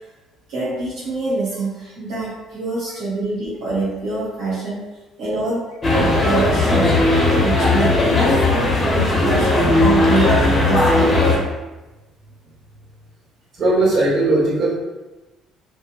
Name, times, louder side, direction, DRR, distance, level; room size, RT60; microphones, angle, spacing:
voice 1, 0.5-4.8 5.2-5.6 5.9-7.0 7.4-11.4, right 3 dB, 75° right, -9 dB, 1.0 m, -25 dB
sound 1, 5.8-11.4, left 2 dB, 35° left, 0.7 m, -17 dB
voice 2, 13.5-14.7, right 2 dB, 50° right, -6 dB, 1.2 m, -18 dB
2.7 x 2.1 x 2.4 m, 1.1 s
supercardioid pair, 65°, 0 cm